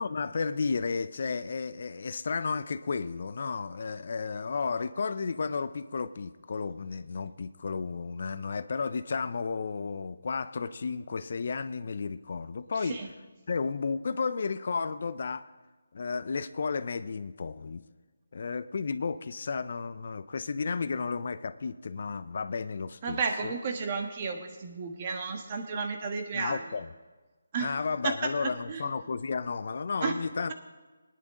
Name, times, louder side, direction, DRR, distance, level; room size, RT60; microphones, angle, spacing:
voice 1, 0.0-13.1 13.5-15.5 15.9-17.8 18.3-23.2 23.4-23.5 26.3-26.9 27.6-30.5, left 5 dB, 55° left, 14 dB, 0.5 m, -33 dB
voice 2, 23.0-26.6 27.5-27.7 28.0-28.9 30.0-30.1, right 5 dB, 35° right, 5 dB, 1.4 m, -32 dB
18.5 x 10.0 x 3.7 m, 1.3 s
figure-of-eight pair, 160°, 0 cm